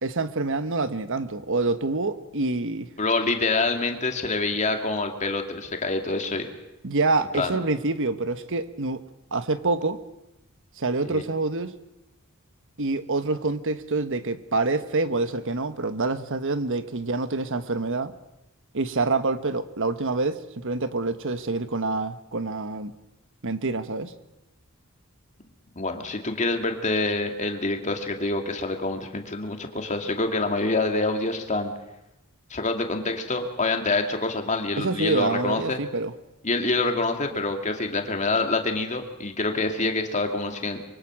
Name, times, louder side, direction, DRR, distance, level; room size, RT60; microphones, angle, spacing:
voice 1, 0.0-2.9 6.8-9.0 9.3-10.0 10.8-11.7 12.8-18.1 18.7-22.9 23.4-24.1 34.8-36.1, right 3 dB, 60° right, 11 dB, 1.3 m, -26 dB
voice 2, 3.0-6.5 7.3-7.5 11.0-11.2 25.8-31.7 32.5-35.8 36.4-40.8, left 3 dB, 35° left, 4 dB, 2.4 m, -26 dB
24.5 x 23.5 x 6.3 m, 0.91 s
head